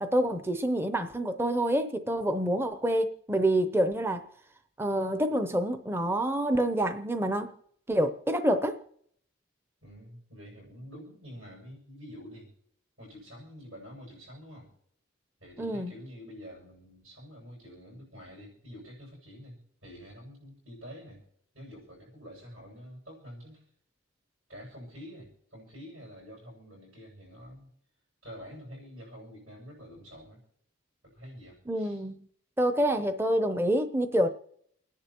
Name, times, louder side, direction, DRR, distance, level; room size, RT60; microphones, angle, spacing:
voice 1, 0.0-4.2 4.8-7.5 7.9-8.8 15.6-15.9 31.7-32.3 32.6-34.3, right 1 dB, 10° right, 0.6 m, -27 dB
voice 2, 9.8-12.5 13.0-14.7 15.4-21.2 21.5-23.6 24.5-27.7 28.2-30.4 31.0-32.0, equal, 75° right, 6.9 m, -47 dB
29.0 x 10.5 x 2.9 m
head